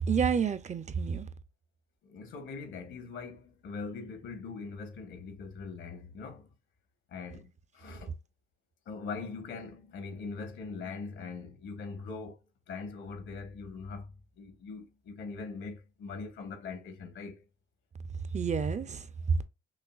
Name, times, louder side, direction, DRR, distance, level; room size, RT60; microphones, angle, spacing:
voice 1, 0.0-1.3 18.3-19.4, right 6 dB, 35° right, 0.5 m, -29 dB
voice 2, 2.0-6.5 7.1-8.1 8.8-12.4 12.7-17.4, left 4 dB, 75° left, 1.4 m, -42 dB
6.3 x 2.6 x 2.4 m
cardioid pair, 90°, 20 cm